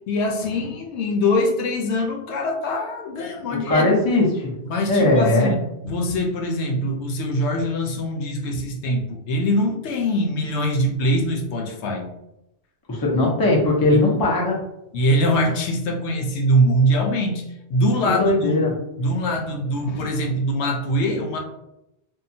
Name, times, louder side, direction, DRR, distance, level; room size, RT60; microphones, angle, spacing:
voice 1, 0.1-3.9 4.6-5.6 5.8-12.2 13.1-13.3 13.9-14.0 14.9-17.4 17.7-18.6 19.0-21.4, equal, 85° left, 3 dB, 0.9 m, -23 dB
voice 2, 3.7-4.5 4.9-5.5 12.9-14.6 18.2-18.7, left 2 dB, 25° left, -3 dB, 0.5 m, -19 dB
2.7 x 2.3 x 2.6 m, 0.86 s
omnidirectional pair, 1.1 m